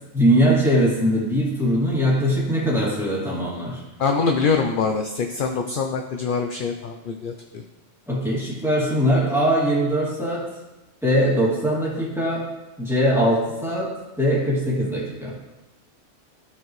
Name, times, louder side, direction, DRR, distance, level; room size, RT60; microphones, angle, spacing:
voice 1, 0.1-3.8 8.1-10.4 11.0-12.4 12.8-13.9 14.2-15.3, equal, ahead, -6 dB, 2.2 m, -21 dB
voice 2, 4.0-7.6, left 5 dB, 55° left, 4 dB, 0.6 m, -24 dB
13.5 x 4.6 x 3.1 m, 1.1 s
omnidirectional pair, 1.2 m